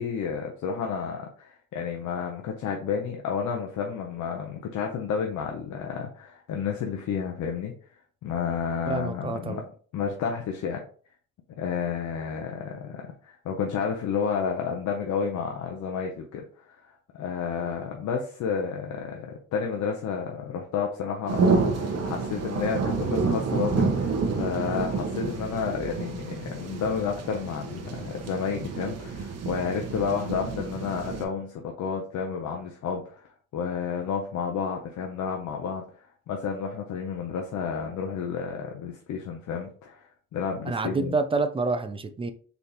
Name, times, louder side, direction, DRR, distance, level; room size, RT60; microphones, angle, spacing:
voice 1, 0.0-7.7 8.2-9.6 9.9-10.8 11.6-33.2 33.5-41.2, left 6 dB, 70° left, 2 dB, 0.7 m, -31 dB
voice 2, 8.9-9.6 40.6-42.3, right 3 dB, 20° right, 9 dB, 0.5 m, -28 dB
sound 1, 21.3-31.2, right 4 dB, 55° right, 0.9 m, -29 dB
4.0 x 3.4 x 2.9 m, 0.44 s
cardioid pair, 90°, 30 cm